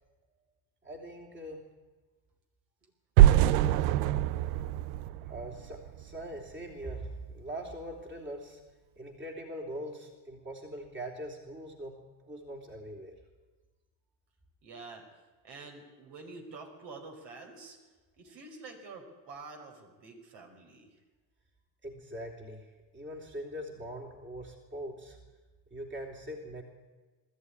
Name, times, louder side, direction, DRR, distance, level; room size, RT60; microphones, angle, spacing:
voice 1, 0.8-1.6 5.2-8.6 9.0-13.2 21.8-25.2 25.7-26.6, right 1 dB, 25° right, 2 dB, 3.4 m, -42 dB
sound 1, 3.2-6.2, right 12 dB, 80° right, 0.8 m, -24 dB
voice 2, 14.6-15.1 15.4-17.8 18.2-21.0, right 3 dB, 60° right, 3 dB, 5.5 m, -47 dB
20.0 x 13.5 x 9.8 m, 1.3 s
supercardioid pair, 90°, 48 cm